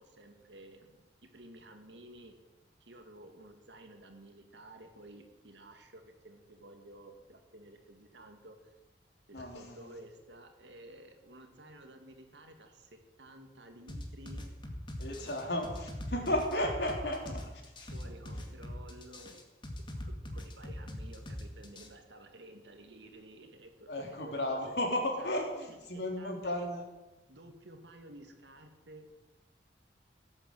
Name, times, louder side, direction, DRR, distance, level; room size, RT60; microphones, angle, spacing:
voice 1, 0.0-2.4 2.8-8.7 9.3-14.5 15.1-15.4 16.5-16.6 17.9-19.4 19.9-24.7 25.2-25.4 25.7-26.7 27.3-29.1, right 1 dB, 85° right, 5 dB, 2.2 m, -53 dB
voice 2, 9.3-9.9 15.0-17.9 23.9-26.8, left 1 dB, 65° left, 1 dB, 3.6 m, -34 dB
sound 1, 13.9-21.9, left 1 dB, 25° left, 2.0 m, -41 dB
17.5 x 8.8 x 7.9 m, 1.1 s
head